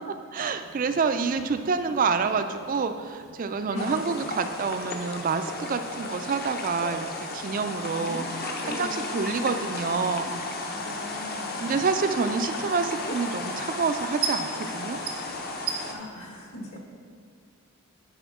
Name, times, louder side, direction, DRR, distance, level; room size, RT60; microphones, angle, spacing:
voice 1, 0.1-8.3 8.6-10.4 11.3-15.0, right 5 dB, 35° right, 9 dB, 0.3 m, -28 dB
sound 1, 0.6-16.2, right 5 dB, 75° right, 0.9 m, -42 dB
sound 2, 3.8-15.9, left 2 dB, 45° left, 0.7 m, -34 dB
voice 2, 8.0-9.7 10.7-11.9 15.8-16.8, equal, 65° left, -2 dB, 1.7 m, -40 dB
10.5 x 5.0 x 3.6 m, 2.2 s
head